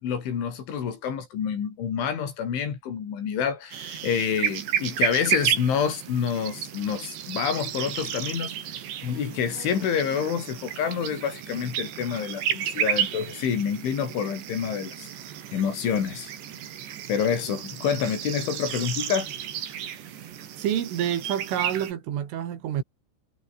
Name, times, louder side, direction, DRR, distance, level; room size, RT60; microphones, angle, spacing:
voice 1, 0.0-8.5 9.0-15.1 15.5-16.3 17.1-19.3, left 7 dB, 75° left, 6.6 m, -28 dB
sound 1, 3.7-21.9, right 10 dB, 65° right, 4.6 m, -32 dB
voice 2, 20.6-22.8, right 10 dB, 85° right, 5.3 m, -28 dB
omnidirectional pair, 5.6 m